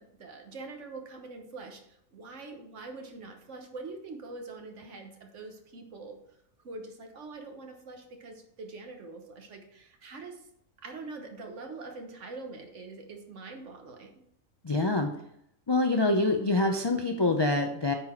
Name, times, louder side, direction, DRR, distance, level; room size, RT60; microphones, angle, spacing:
voice 1, 0.0-6.2 6.6-10.5 10.8-14.2, right 3 dB, 65° right, 4 dB, 1.4 m, -44 dB
voice 2, 14.6-15.1 15.7-17.9, left 2 dB, 45° left, 3 dB, 0.3 m, -25 dB
9.0 x 4.1 x 4.4 m, 0.75 s
omnidirectional pair, 1.4 m